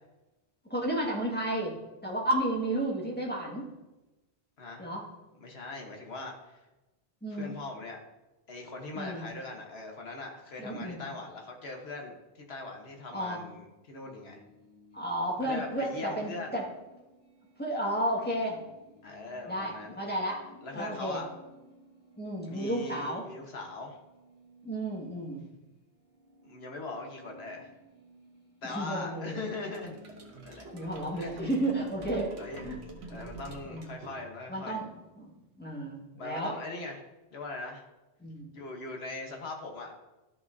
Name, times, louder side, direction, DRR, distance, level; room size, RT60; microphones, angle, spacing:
voice 1, 0.7-1.8 2.0-3.7 4.8-5.0 7.2-7.5 8.9-9.2 10.6-11.0 13.1-13.4 14.9-16.6 17.6-18.6 19.5-20.4 20.7-21.2 22.2-23.2 24.6-25.4 28.6-29.4 30.6-32.3 32.6-32.8 33.0-33.2 33.7-33.9 34.5-34.9 35.2-35.3 35.6-36.5 38.2-38.5, right 1 dB, 10° left, -3 dB, 1.8 m, -32 dB
voice 2, 4.6-4.9 5.4-6.6 7.3-8.0 8.5-14.4 15.4-16.6 19.0-20.0 20.6-21.3 22.4-24.0 26.4-27.7 28.6-30.1 30.4-31.7 32.4-32.7 33.1-34.8 36.2-37.0 37.3-37.8 38.5-39.9, left 2 dB, 75° left, 2 dB, 1.5 m, -41 dB
sound 1, 14.0-22.9 23.2-33.0, left 2 dB, 50° left, 2.8 m, -58 dB
sound 2, 29.7-34.6, right 3 dB, 85° right, 1.3 m, -47 dB
12.5 x 5.6 x 2.7 m, 1.1 s
omnidirectional pair, 1.1 m